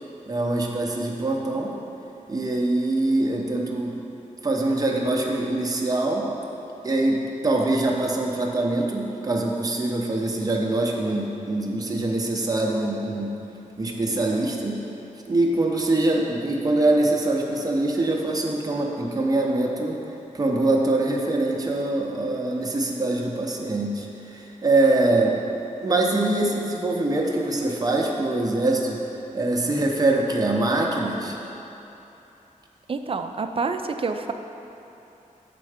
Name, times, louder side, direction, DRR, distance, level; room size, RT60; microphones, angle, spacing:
voice 1, 0.3-1.7 2.3-3.9 4.4-6.3 6.8-13.3 13.8-14.8 15.3-20.0 20.3-25.4 25.8-29.0 29.3-31.4, right 2 dB, 25° right, -1 dB, 0.7 m, -23 dB
voice 2, 32.9-34.3, right 4 dB, 40° right, 7 dB, 0.4 m, -27 dB
6.8 x 4.4 x 4.9 m, 2.9 s
wide cardioid pair, 95°, 14 cm